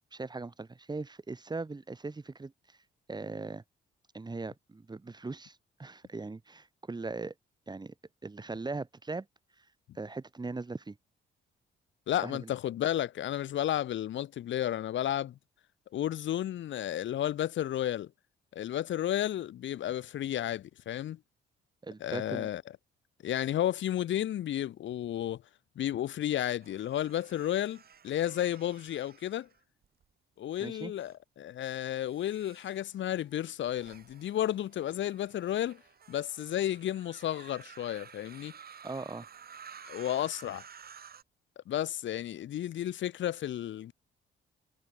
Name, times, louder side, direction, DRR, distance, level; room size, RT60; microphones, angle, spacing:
voice 1, 0.1-2.8 3.1-3.6 4.1-7.3 7.7-7.9 8.2-9.3 9.9-11.0 12.2-12.5 21.8-22.5 30.6-30.9 38.8-39.3, right 3 dB, 20° right, 2.9 m, -39 dB
voice 2, 12.1-15.4 15.9-18.1 18.5-21.2 22.0-22.6 23.2-25.4 25.8-29.5 30.4-35.8 36.1-38.5 39.8-40.6 41.7-43.9, left 11 dB, 70° left, 2.4 m, -32 dB
sound 1, 26.6-30.0 30.6-31.1 31.8-41.2, right 7 dB, 50° right, 7.6 m, -53 dB
cardioid pair, 90°, 20 cm